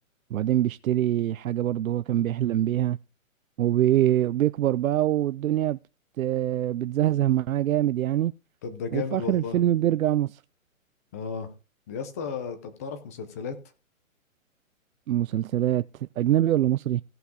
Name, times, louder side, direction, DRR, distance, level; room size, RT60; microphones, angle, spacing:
voice 1, 0.3-3.0 3.6-5.8 6.2-8.3 8.9-10.4 15.1-17.0, right 12 dB, 80° right, 0.5 m, -24 dB
voice 2, 8.6-9.6 11.1-11.5 11.9-13.5, left 6 dB, 10° left, 0.5 m, -34 dB
16.5 x 5.7 x 3.8 m
hypercardioid pair, 155°, 41 cm